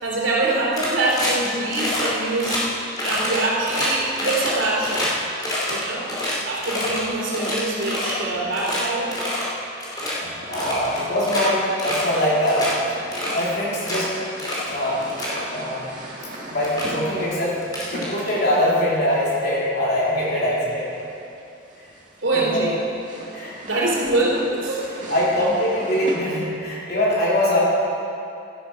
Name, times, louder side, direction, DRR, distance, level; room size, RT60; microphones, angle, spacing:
voice 1, 0.0-2.6 3.0-5.1 5.6-6.1 6.4-9.2 22.2-22.7 23.6-24.9, right 2 dB, 75° right, -4 dB, 3.0 m, -24 dB
sound 1, 0.7-1.5 1.7-2.1 2.4-2.6 3.0-5.1 5.4-7.0 7.3-8.2 8.5-8.8 9.1-9.5 9.8-10.1 10.5-11.5 11.8-12.2 12.5-12.7 13.1-14.0 14.4-14.7 15.0-15.4 16.2-16.3 16.6-16.9 17.6-18.5, left 1 dB, 20° left, 2.9 m, -27 dB
voice 2, 10.0-13.0 13.3-14.1 14.7-15.1 15.5-15.9 16.4-17.6 17.9-21.0 21.8-21.9 22.3-22.7 23.3-23.6 25.1-27.6, left 1 dB, 55° left, -6 dB, 3.4 m, -23 dB
sound 2, 10.0-26.2, right 1 dB, 40° right, 1.9 m, -40 dB
12.5 x 11.5 x 5.1 m, 2.6 s
head